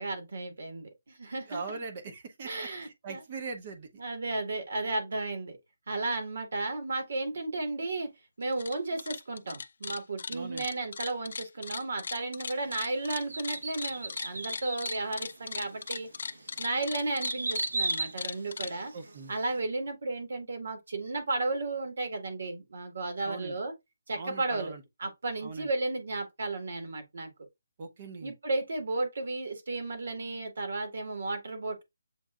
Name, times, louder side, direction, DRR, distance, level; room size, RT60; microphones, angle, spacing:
voice 1, 0.0-1.6 2.4-3.2 4.0-5.6 5.9-8.1 8.4-16.1 16.6-18.9 19.3-23.7 24.1-24.7 25.0-27.3 28.2-31.8, right 2 dB, 55° right, 1.8 m, -34 dB
voice 2, 1.5-3.9 10.3-10.7 18.9-19.3 23.2-23.6 24.1-24.8 25.4-25.7 27.8-28.3, right 4 dB, 25° right, 0.8 m, -41 dB
sound 1, 8.4-8.7 9.0-18.7, left 5 dB, 50° left, 0.3 m, -38 dB
sound 2, 13.3-15.1 15.7-15.8 16.3-19.2 19.5-19.6, right 2 dB, 85° right, 1.0 m, -35 dB
7.7 x 2.6 x 2.4 m
hypercardioid pair, 175°, 0 cm